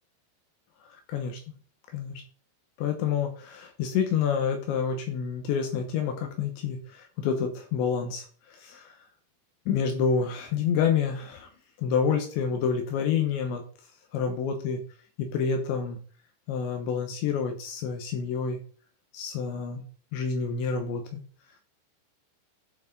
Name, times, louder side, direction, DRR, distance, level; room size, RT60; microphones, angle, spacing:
voice 1, 1.1-1.4 1.9-2.2 2.8-8.9 9.7-11.5 11.8-13.6 14.1-14.8 15.2-16.0 16.5-18.6 19.1-19.8 20.1-21.2, left 6 dB, 80° left, 5 dB, 3.4 m, -28 dB
11.5 x 6.1 x 3.9 m, 0.41 s
omnidirectional pair, 5.3 m